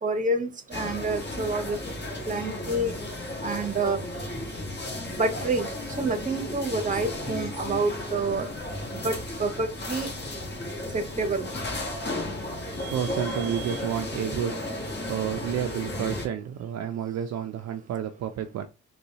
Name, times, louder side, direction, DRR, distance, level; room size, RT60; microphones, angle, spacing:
voice 1, 0.0-1.8 2.3-2.9 3.4-4.0 5.2-5.7 6.0-8.5 8.9-10.1 10.9-11.5, right 2 dB, 25° right, 0.8 m, -28 dB
sound 1, 0.7-16.3, left 1 dB, 35° left, 1.3 m, -34 dB
voice 2, 12.9-14.5 15.1-18.7, right 9 dB, 60° right, 0.5 m, -30 dB
3.9 x 2.3 x 2.7 m
cardioid pair, 90°, 30 cm